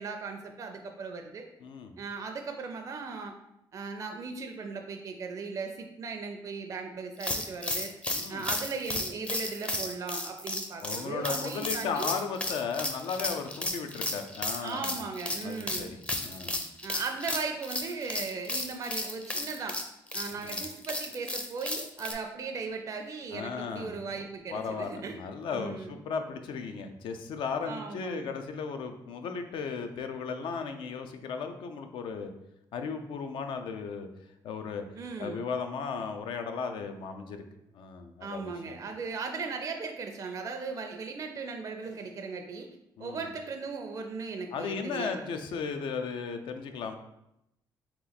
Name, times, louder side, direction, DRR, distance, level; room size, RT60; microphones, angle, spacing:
voice 1, 0.0-1.5 2.0-3.4 3.7-7.9 8.3-12.1 14.6-15.9 16.8-19.8 20.1-25.2 25.5-26.0 27.7-28.3 35.0-35.5 38.2-42.7 43.0-45.3, right 4 dB, 40° right, 4 dB, 0.4 m, -37 dB
voice 2, 1.6-1.9 8.1-8.5 10.8-15.0 15.4-16.6 20.4-20.6 23.3-32.3 32.7-34.1 34.4-34.8 35.2-37.4 37.7-38.8 43.0-43.3 44.5-47.0, left 5 dB, 75° left, 6 dB, 0.5 m, -36 dB
sound 1, 7.2-22.1, left 1 dB, 15° left, 0.5 m, -34 dB
3.3 x 3.0 x 3.9 m, 0.85 s
cardioid pair, 95°, 8 cm